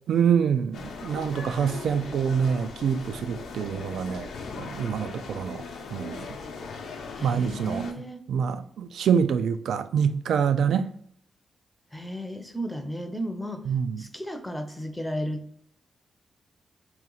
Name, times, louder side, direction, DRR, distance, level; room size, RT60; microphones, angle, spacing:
voice 1, 0.1-4.3 4.6-5.6 5.9-6.3 7.2-7.9 8.3-10.9 13.7-14.1, right 7 dB, 85° right, 0.3 m, -26 dB
sound 1, 0.7-7.9, left 4 dB, 85° left, 0.6 m, -39 dB
voice 2, 7.1-8.2 11.9-13.6 14.0-15.5, equal, 5° left, 0.5 m, -34 dB
3.1 x 3.0 x 3.7 m
wide cardioid pair, 145°, 0 cm